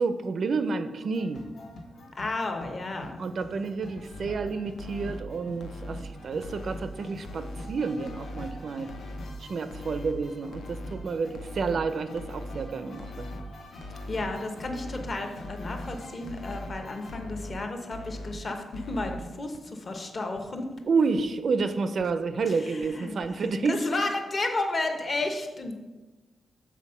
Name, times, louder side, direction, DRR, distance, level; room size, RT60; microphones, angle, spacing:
voice 1, 0.0-1.4 3.2-8.9 9.4-13.3 20.9-23.9, right 4 dB, 50° right, 10 dB, 0.4 m, -29 dB
sound 1, 1.1-17.2, left 2 dB, 60° left, 1.1 m, -46 dB
voice 2, 2.1-3.1 14.1-20.7 22.5-25.7, left 2 dB, 35° left, 4 dB, 0.8 m, -32 dB
sound 2, 4.0-4.4 4.8-5.2 5.6-6.0 6.4-6.8 7.2-7.7 8.1-8.5 8.9-9.3 9.7-10.1 10.5-10.9 11.3-11.8 12.2-12.6 13.0-13.4 13.8-14.2 14.6-15.1 15.4-15.9 16.3-16.7 17.1-17.5 17.9-18.3 18.7-19.1 19.5-19.6 20.0-20.1 20.4-20.5 20.8-20.9 21.2-21.3 21.6-21.7 22.0-22.1 22.4-22.5 22.8-22.9 23.2-23.3, left 1 dB, 85° left, 0.6 m, -40 dB
7.2 x 4.2 x 5.4 m, 1.2 s
wide cardioid pair, 155°, 0 cm